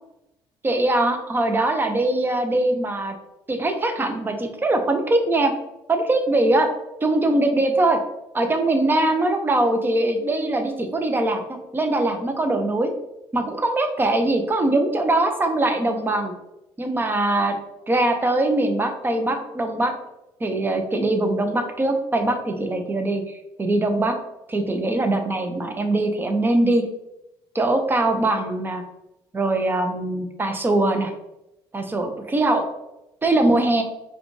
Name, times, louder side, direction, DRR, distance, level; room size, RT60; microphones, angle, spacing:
voice 1, 0.6-3.1 3.5-5.5 5.9-6.7 7.0-8.0 8.3-12.9 13.3-16.3 16.8-17.6 17.9-19.9 20.4-24.2 24.5-26.8 27.5-28.8 29.3-31.1 31.7-32.7 33.2-33.8, right 2 dB, 20° right, 5 dB, 0.6 m, -22 dB
4.7 x 2.3 x 3.2 m, 0.89 s
cardioid pair, 100°, 10 cm